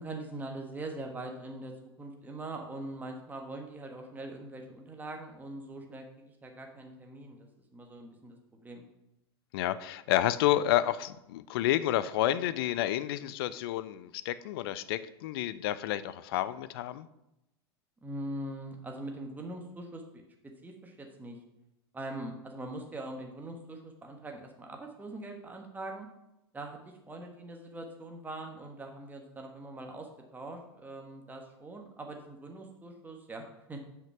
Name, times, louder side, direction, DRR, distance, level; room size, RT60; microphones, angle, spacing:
voice 1, 0.0-8.4 8.6-8.8 18.0-20.0 20.4-21.4 21.9-26.1 26.5-33.8, right 2 dB, 15° right, 2 dB, 1.3 m, -42 dB
voice 2, 9.5-17.1, left 13 dB, 60° left, 15 dB, 0.5 m, -30 dB
5.9 x 5.7 x 5.9 m, 0.87 s
hypercardioid pair, 95°, 14 cm